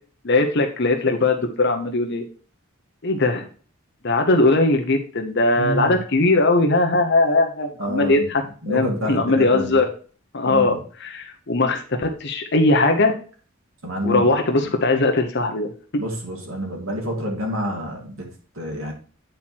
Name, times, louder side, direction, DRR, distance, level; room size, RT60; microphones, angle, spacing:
voice 1, 0.2-2.2 3.0-3.4 4.0-9.9 10.3-13.1 14.0-16.0, left 2 dB, 55° left, 4 dB, 0.9 m, -20 dB
voice 2, 5.6-5.9 7.8-8.3 8.6-9.8 10.4-10.8 13.8-14.3 16.0-18.3 18.6-18.9, equal, 70° right, 1 dB, 2.5 m, -27 dB
9.2 x 4.3 x 4.4 m, 0.40 s
head